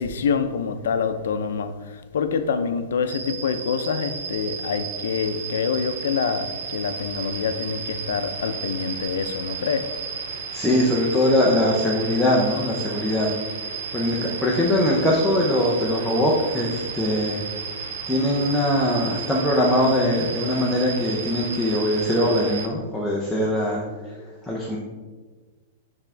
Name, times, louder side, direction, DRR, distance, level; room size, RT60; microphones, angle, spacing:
voice 1, 0.0-9.9, left 6 dB, 80° left, 0.6 m, -26 dB
sound 1, 3.1-22.7, right 6 dB, 55° right, 0.7 m, -33 dB
voice 2, 10.3-13.3 13.9-17.4 18.1-24.8, left 1 dB, ahead, 0.6 m, -22 dB
10.0 x 3.6 x 3.4 m
supercardioid pair, 175°, 0 cm